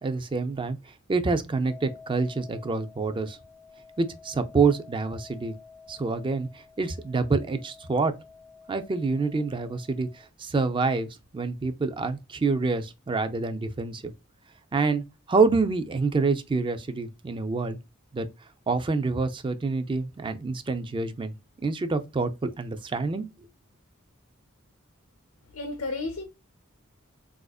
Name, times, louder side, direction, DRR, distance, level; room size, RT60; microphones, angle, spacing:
voice 1, 0.0-0.8 1.1-3.4 4.0-5.5 5.9-8.1 8.7-14.1 14.7-17.8 18.1-18.3 18.7-21.3 21.6-23.3, right 4 dB, 25° right, 0.4 m, -27 dB
sound 1, 1.6-10.3, left 5 dB, 65° right, 0.9 m, -51 dB
voice 2, 25.5-26.2, left 3 dB, 85° left, 0.7 m, -32 dB
4.1 x 2.5 x 2.3 m
head